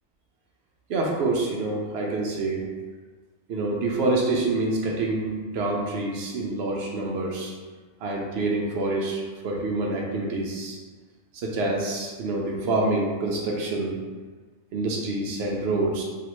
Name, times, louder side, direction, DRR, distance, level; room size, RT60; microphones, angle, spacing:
voice 1, 0.9-2.6 3.5-7.5 8.0-10.8 11.4-14.0 14.7-16.0, right 2 dB, 65° right, -1 dB, 0.9 m, -27 dB
3.2 x 2.8 x 3.0 m, 1.4 s
omnidirectional pair, 1.2 m